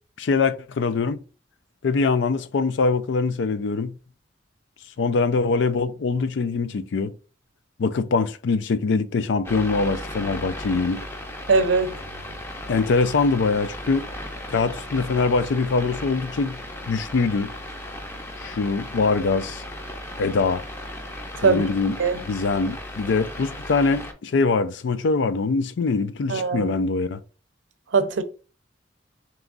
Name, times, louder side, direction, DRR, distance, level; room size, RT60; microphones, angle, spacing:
voice 1, 0.2-1.2 1.8-4.0 5.0-7.1 7.8-11.1 12.7-14.1 14.5-16.6 16.9-17.5 18.4-19.6 20.2-20.6 21.4-22.0 22.3-27.2, left 4 dB, 70° left, 0.4 m, -23 dB
sound 1, 9.4-24.1, left 1 dB, 15° left, 0.6 m, -36 dB
voice 2, 11.5-11.9 21.4-21.6 22.0-22.2 26.3-26.7 27.9-28.2, right 4 dB, 85° right, 0.6 m, -20 dB
3.4 x 3.0 x 3.8 m
head